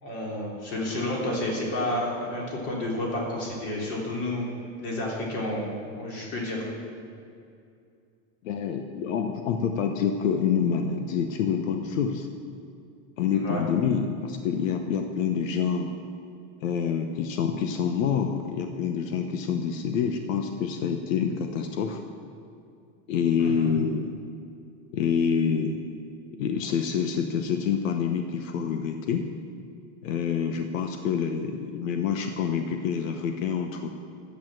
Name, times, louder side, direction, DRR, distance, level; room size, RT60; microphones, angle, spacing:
voice 1, 0.0-4.4 4.8-6.6 13.3-13.6 23.4-23.7, left 1 dB, 40° left, -3 dB, 3.4 m, -30 dB
voice 2, 8.4-12.3 13.2-15.9 16.6-22.0 23.1-24.1 24.9-25.8 26.4-29.3 30.0-33.9, left 7 dB, 85° left, 6 dB, 1.0 m, -27 dB
11.5 x 8.3 x 7.6 m, 2.5 s
supercardioid pair, 165°, 38 cm